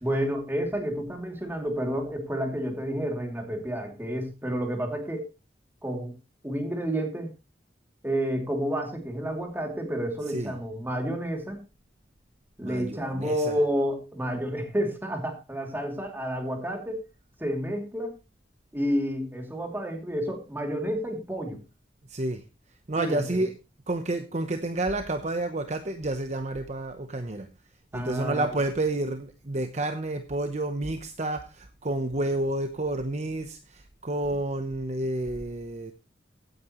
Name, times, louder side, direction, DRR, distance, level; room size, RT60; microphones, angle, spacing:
voice 1, 0.0-5.3 5.8-6.1 6.4-7.3 8.0-11.6 12.6-17.1 17.4-18.2 18.7-21.6 23.0-23.2 27.9-28.6, equal, 10° right, 3 dB, 2.8 m, -30 dB
voice 2, 12.6-13.5 22.1-22.4 22.9-23.5 23.9-27.5 27.9-35.9, right 2 dB, 40° right, 7 dB, 0.9 m, -30 dB
16.0 x 9.4 x 3.1 m, 0.27 s
head